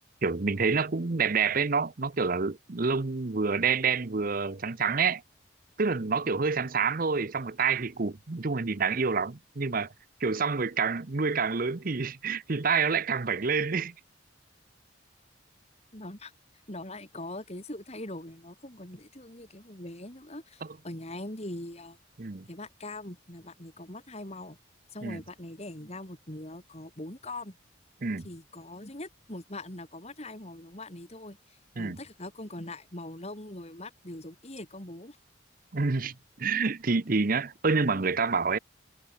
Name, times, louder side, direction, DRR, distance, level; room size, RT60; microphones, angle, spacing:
voice 1, 0.2-5.2 5.8-9.9 10.2-13.9 22.2-22.5 25.0-25.2 28.0-28.3 31.8-32.0 35.7-38.6, right 5 dB, 45° right, 0.8 m, -28 dB
voice 2, 15.9-16.3 16.7-22.0 22.5-24.6 24.9-27.6 28.2-35.2, left 1 dB, 35° left, 3.9 m, -42 dB
head